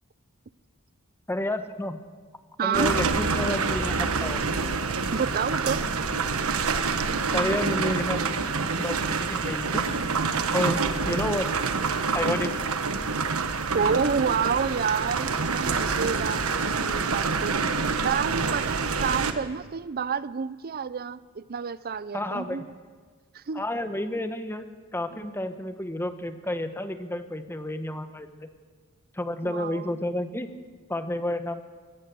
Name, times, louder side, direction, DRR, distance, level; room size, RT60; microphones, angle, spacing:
voice 1, 1.3-2.0 2.6-4.5 7.3-8.4 8.8-9.8 10.5-11.5 12.1-12.6 22.1-22.7 23.5-24.7 24.9-28.5 29.1-30.5 30.9-31.6, left 1 dB, 10° left, 9 dB, 1.0 m, -30 dB
voice 2, 2.6-2.9 5.1-5.9 13.7-22.7 23.3-23.6 29.4-30.0, right 6 dB, 45° right, 17 dB, 0.5 m, -29 dB
sound 1, 2.7-19.3, right 4 dB, 70° right, 1.3 m, -27 dB
22.5 x 17.0 x 6.9 m, 1.5 s
head